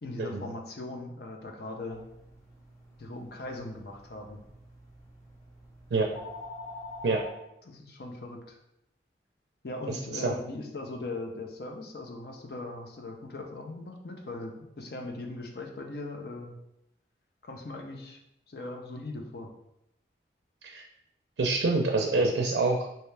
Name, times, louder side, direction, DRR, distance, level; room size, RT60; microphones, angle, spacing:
voice 1, 0.0-2.0 3.0-4.4 7.6-8.6 9.6-16.6 17.4-18.2 18.5-19.5, left 2 dB, 60° left, 2 dB, 0.6 m, -39 dB
sound 1, 1.9-7.3, left 2 dB, 15° left, 0.6 m, -46 dB
voice 2, 21.4-22.9, right 3 dB, 80° right, 1 dB, 0.4 m, -26 dB
3.3 x 2.8 x 3.2 m, 0.83 s
head